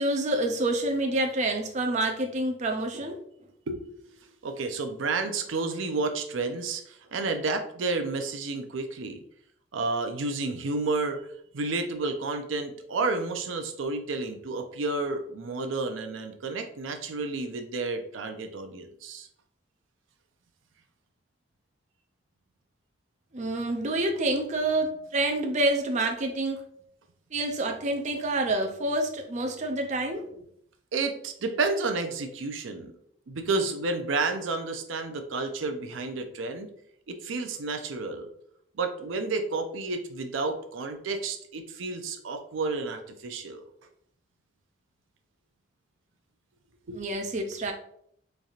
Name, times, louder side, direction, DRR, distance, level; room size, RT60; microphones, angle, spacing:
voice 1, 0.0-3.2 23.3-26.6 27.3-30.2 46.9-47.7, right 2 dB, 40° right, 4 dB, 0.4 m, -27 dB
voice 2, 3.7-9.2 9.7-11.2 11.5-19.3 30.3-30.4 30.9-32.9 33.3-36.7 37.1-38.3 38.8-43.6 46.9-47.1, right 3 dB, 90° right, 6 dB, 0.5 m, -31 dB
4.1 x 3.3 x 2.4 m, 0.69 s
head